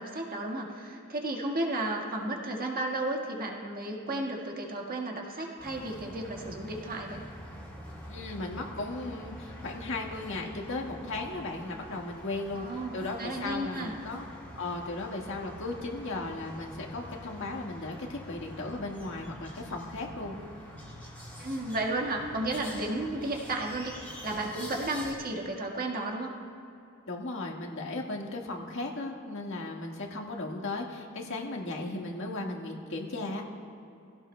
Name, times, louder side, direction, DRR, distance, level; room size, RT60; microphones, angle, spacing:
voice 1, 0.0-7.2 12.5-13.9 21.4-24.0 24.2-26.3, right 2 dB, 45° right, 0 dB, 1.6 m, -33 dB
sound 1, 5.6-25.1, equal, 10° left, 2.8 m, -46 dB
voice 2, 8.1-12.7 12.9-14.2 14.6-20.4 27.1-33.4, left 2 dB, 65° left, 0 dB, 1.6 m, -36 dB
22.0 x 16.5 x 2.2 m, 2.7 s
head